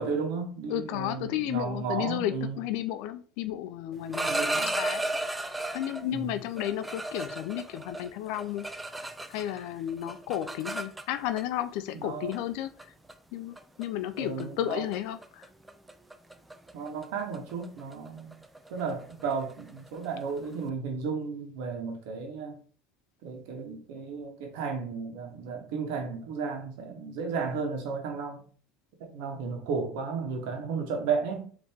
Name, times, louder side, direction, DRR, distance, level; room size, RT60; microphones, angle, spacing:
voice 1, 0.0-2.6 4.3-4.7 6.0-6.4 12.0-12.3 14.2-14.8 16.7-18.4 18.7-22.5 23.2-28.4 29.1-31.5, right 5 dB, 75° right, 1.2 m, -33 dB
voice 2, 0.7-4.3 4.6-5.0 5.7-8.6 9.3-12.7 13.3-15.5, left 12 dB, 70° left, 0.4 m, -33 dB
sound 1, 3.9-6.0 6.6-9.6 9.9-11.4 12.3-12.5 12.8-13.1 13.6-13.8 14.2-14.4 14.7-15.0 15.2-20.6, right 1 dB, 10° right, 0.4 m, -34 dB
4.2 x 2.9 x 3.5 m
supercardioid pair, 115°, 0 cm